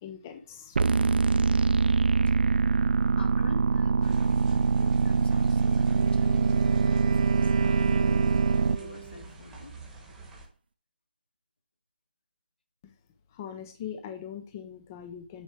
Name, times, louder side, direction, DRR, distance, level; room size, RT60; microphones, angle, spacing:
voice 1, 0.0-1.7 13.3-15.4, left 9 dB, 15° left, 7 dB, 0.4 m, -42 dB
sound 1, 0.7-8.8, right 4 dB, 65° right, 0.5 m, -23 dB
voice 2, 3.2-9.8, left 3 dB, 70° left, 2 dB, 2.7 m, -46 dB
sound 2, 4.0-10.5, right 3 dB, 5° right, 1.1 m, -47 dB
Wind instrument woodwind instrument, 5.8-9.3, right 5 dB, 35° right, 0.9 m, -36 dB
8.3 x 4.6 x 4.5 m, 0.43 s
hypercardioid pair, 175°, 6 cm